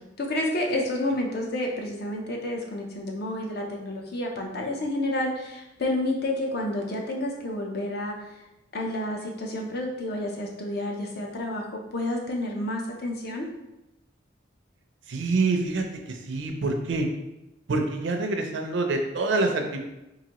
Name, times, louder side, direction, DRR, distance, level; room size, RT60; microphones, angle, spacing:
voice 1, 0.2-8.4 8.7-13.5, left 1 dB, 55° left, 0 dB, 0.6 m, -30 dB
voice 2, 15.1-17.1 17.7-19.8, right 3 dB, 65° right, 4 dB, 0.5 m, -26 dB
3.9 x 2.6 x 2.9 m, 0.95 s
head